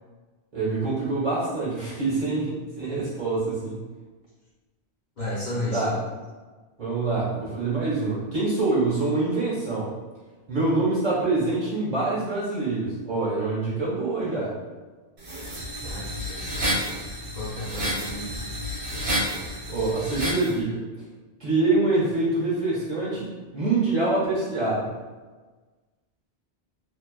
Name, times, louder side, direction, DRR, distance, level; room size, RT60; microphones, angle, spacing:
voice 1, 0.5-3.8 5.7-5.9 6.8-9.9 10.5-14.5 19.7-20.8 21.4-23.3 23.5-24.9, right 3 dB, 45° right, -7 dB, 1.0 m, -25 dB
voice 2, 5.2-6.0 15.8-18.4, left 1 dB, 45° left, -9 dB, 1.0 m, -34 dB
sound 1, 15.2-20.5, equal, 85° right, 1.0 m, -30 dB
2.5 x 2.2 x 2.3 m, 1.3 s
omnidirectional pair, 1.1 m